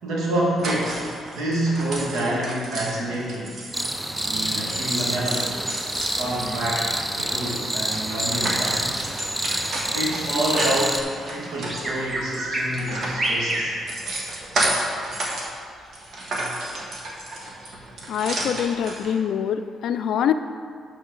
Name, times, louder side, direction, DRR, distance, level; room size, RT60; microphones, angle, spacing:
voice 1, 0.0-3.6 4.2-5.7 6.1-8.9 9.9-13.8 18.0-18.1, right 1 dB, 80° right, -4 dB, 1.9 m, -27 dB
sound 1, 0.6-4.8 5.1-15.5 15.8-19.1, right 1 dB, 55° right, 1.6 m, -32 dB
sound 2, 3.7-11.0, right 1 dB, 10° right, 0.5 m, -27 dB
Bird vocalization bird call bird song, 8.9-14.4, right 1 dB, 35° right, 1.3 m, -30 dB
voice 2, 18.1-20.3, left 8 dB, 75° left, 10 dB, 0.4 m, -24 dB
11.5 x 4.4 x 3.9 m, 2.2 s
cardioid pair, 90°, 0 cm